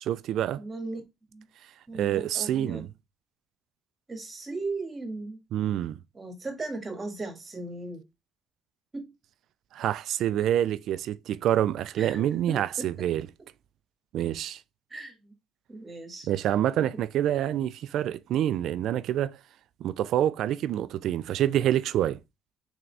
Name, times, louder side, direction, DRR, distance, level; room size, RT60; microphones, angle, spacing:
voice 1, 0.0-0.6 1.9-2.9 5.5-6.0 9.7-13.3 14.1-14.6 16.3-19.4 19.8-22.2, right 11 dB, 70° right, 0.3 m, -27 dB
voice 2, 0.6-1.0 1.3-1.5 1.9-2.9 4.1-5.4 6.1-8.0 8.9-9.1 12.0-12.9 14.9-15.3 15.7-16.3 16.8-16.9, right 3 dB, 25° right, 1.5 m, -37 dB
3.7 x 3.5 x 3.2 m
cardioid pair, 100°, 0 cm